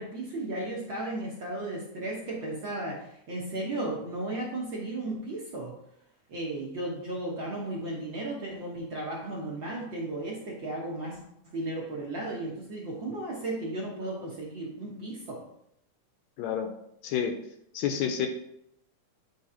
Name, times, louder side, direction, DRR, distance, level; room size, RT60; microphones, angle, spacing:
voice 1, 0.0-5.8 6.3-11.2 11.5-15.5, right 2 dB, 55° right, -4 dB, 1.3 m, -35 dB
voice 2, 16.4-16.7 17.0-17.4 17.7-18.3, left 8 dB, 75° left, 5 dB, 1.8 m, -29 dB
9.6 x 3.4 x 4.3 m, 0.76 s
omnidirectional pair, 3.5 m